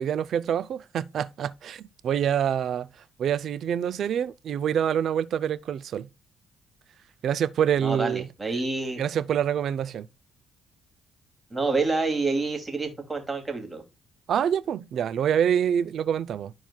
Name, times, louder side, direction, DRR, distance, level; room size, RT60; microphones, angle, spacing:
voice 1, 0.0-2.9 3.2-6.1 7.2-8.3 9.0-10.1 14.3-16.5, right 9 dB, 65° right, 0.5 m, -26 dB
voice 2, 7.8-9.0 11.5-13.8, right 3 dB, 20° right, 2.6 m, -28 dB
12.5 x 4.4 x 2.3 m
cardioid pair, 90°, 0 cm